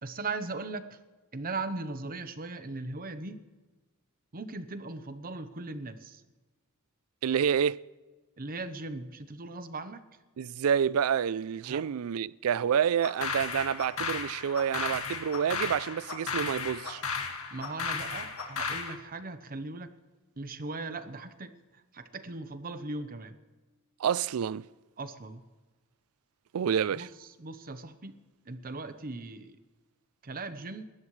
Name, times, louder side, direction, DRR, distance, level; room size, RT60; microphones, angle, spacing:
voice 1, 0.0-1.0 1.3-3.4 4.3-6.2 8.4-10.1 11.6-11.8 17.5-19.9 20.4-23.3 25.0-25.4 26.9-28.2 28.4-29.6 30.2-30.8, right 3 dB, 40° right, 1.0 m, -39 dB
voice 2, 7.2-7.8 10.4-17.0 24.0-24.7 26.5-27.1, right 8 dB, 75° right, 0.4 m, -28 dB
sound 1, 13.0-18.9, left 5 dB, 70° left, 2.0 m, -34 dB
26.5 x 13.5 x 3.2 m
head